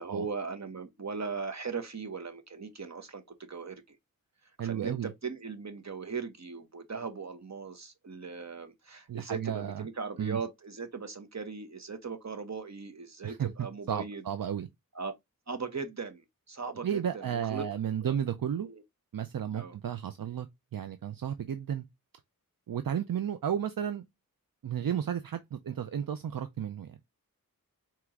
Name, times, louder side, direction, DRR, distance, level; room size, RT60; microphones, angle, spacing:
voice 1, 0.0-4.0 4.6-14.2 14.9-15.1 15.5-17.6 18.0-18.1 18.6-18.8 19.5-19.7, right 5 dB, 50° right, 1.0 m, -38 dB
voice 2, 4.6-5.1 9.1-9.9 10.2-10.4 13.2-14.7 16.8-18.7 19.1-20.5 20.7-21.8 22.7-24.0 24.6-27.0, right 9 dB, 70° right, 0.5 m, -33 dB
4.5 x 3.0 x 3.6 m
wide cardioid pair, 60°, 35 cm